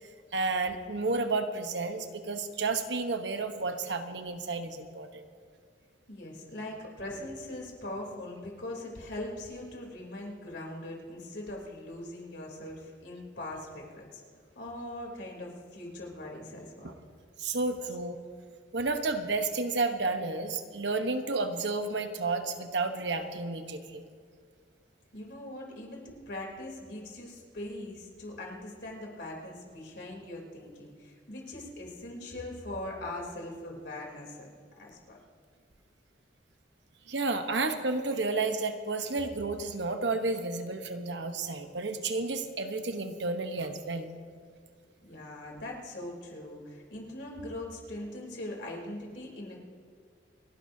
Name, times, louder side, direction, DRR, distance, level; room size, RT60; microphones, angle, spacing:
voice 1, 0.3-5.3 16.8-16.9 17.4-18.2 18.7-24.0 37.1-44.1, right 3 dB, 70° right, 7 dB, 1.1 m, -31 dB
voice 2, 6.1-14.2 14.5-16.9 25.1-34.5 34.8-35.2 45.0-49.6, left 1 dB, 70° left, -1 dB, 3.4 m, -41 dB
29.0 x 11.5 x 2.8 m, 2.1 s
head